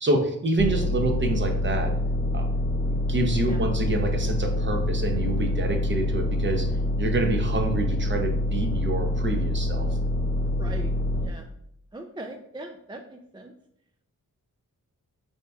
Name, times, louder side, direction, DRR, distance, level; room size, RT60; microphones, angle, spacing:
voice 1, 0.0-1.9 2.3-2.5 2.9-6.7 7.0-9.9, right 2 dB, 35° right, 4 dB, 0.8 m, -27 dB
sound 1, 0.6-11.3, left 1 dB, 35° left, 1.2 m, -26 dB
voice 2, 3.4-3.7 10.4-11.5 11.9-13.5, right 1 dB, 15° right, 3 dB, 0.3 m, -41 dB
4.5 x 2.7 x 3.4 m, 0.76 s
cardioid pair, 65°, 34 cm